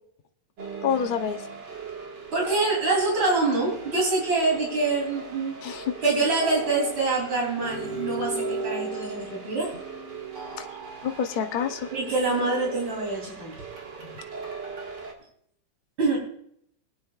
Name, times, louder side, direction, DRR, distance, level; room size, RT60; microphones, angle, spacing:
sound 1, 0.6-15.1, right 4 dB, 60° right, 2.4 m, -37 dB
voice 1, 0.8-1.4 5.6-5.9 10.6-10.7 11.0-11.9 14.0-14.1, left 7 dB, 85° left, 5 dB, 0.4 m, -27 dB
voice 2, 2.3-5.8 6.0-9.7 11.9-13.6 16.0-16.2, right 3 dB, 75° right, -2 dB, 4.3 m, -25 dB
22.0 x 9.6 x 2.4 m, 0.69 s
omnidirectional pair, 2.2 m